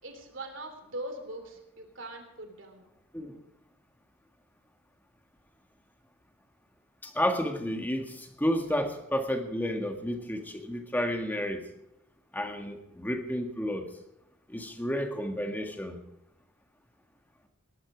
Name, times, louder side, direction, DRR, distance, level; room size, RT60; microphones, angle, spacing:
voice 1, 0.0-2.9, right 1 dB, 60° right, 5 dB, 3.3 m, -41 dB
voice 2, 7.0-11.7 12.3-13.8 14.5-16.0, equal, 10° left, 4 dB, 1.6 m, -31 dB
19.0 x 11.5 x 5.0 m, 0.88 s
head